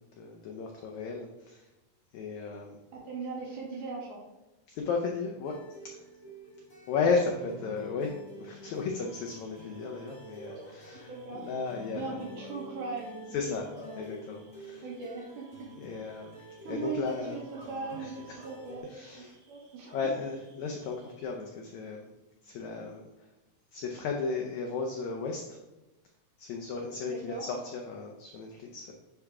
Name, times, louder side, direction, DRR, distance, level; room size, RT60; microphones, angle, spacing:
voice 1, 0.0-1.7 2.1-2.8 4.7-5.6 5.8-5.9 6.9-12.1 13.3-13.7 14.0-14.8 15.8-17.4 18.0-18.4 18.9-19.3 19.9-22.1 22.4-23.1 23.7-25.6 26.4-28.9, left 4 dB, 90° left, 1 dB, 1.6 m, -34 dB
voice 2, 2.9-4.2 11.1-11.4 11.9-14.1 14.8-15.5 16.6-19.9 27.1-27.4, right 4 dB, 70° right, -3 dB, 2.4 m, -39 dB
sound 1, 5.4-18.8, right 1 dB, 50° left, 0.4 m, -48 dB
Bark / Cricket, 8.2-21.5, equal, 35° right, 1.3 m, -56 dB
9.7 x 3.5 x 3.6 m, 1.0 s
omnidirectional pair, 4.1 m